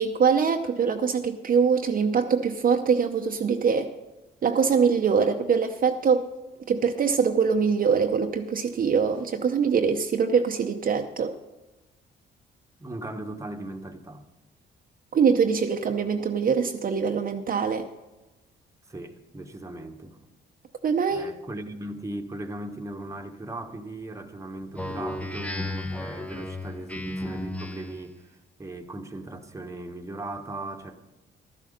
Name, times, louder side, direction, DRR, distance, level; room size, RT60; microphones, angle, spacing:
voice 1, 0.0-3.9 4.4-6.3 6.7-11.3 15.1-17.9 20.8-21.3, right 6 dB, 45° right, 4 dB, 0.7 m, -23 dB
voice 2, 12.8-14.3 18.9-20.3 21.1-31.1, right 2 dB, 15° right, 5 dB, 1.1 m, -38 dB
Speech synthesizer, 24.7-28.1, left 2 dB, 5° left, 0.8 m, -34 dB
12.0 x 11.0 x 5.1 m, 1.1 s
cardioid pair, 90°, 20 cm